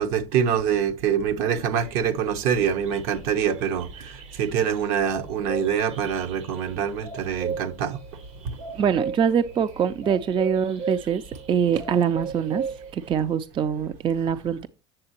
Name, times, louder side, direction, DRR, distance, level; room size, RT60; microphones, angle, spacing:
voice 1, 0.0-8.0 8.4-8.6, right 8 dB, 65° right, 1.0 m, -25 dB
sound 1, 1.8-13.1, right 5 dB, 90° right, 4.2 m, -37 dB
voice 2, 8.7-12.7 12.9-14.7, right 7 dB, 30° right, 0.4 m, -24 dB
7.7 x 7.2 x 2.9 m
hypercardioid pair, 90°, 16 cm